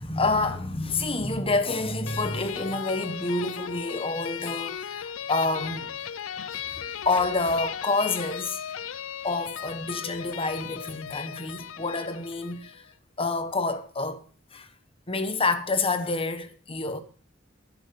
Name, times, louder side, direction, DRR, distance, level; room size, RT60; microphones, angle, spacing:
voice 1, 0.0-5.9 6.6-8.6 9.2-12.8 13.2-14.2 14.5-14.7 15.1-17.0, left 3 dB, 30° left, 1.4 m, -28 dB
sound 1, 2.1-12.8, left 9 dB, 85° left, 0.6 m, -37 dB
11.5 x 10.5 x 5.4 m
head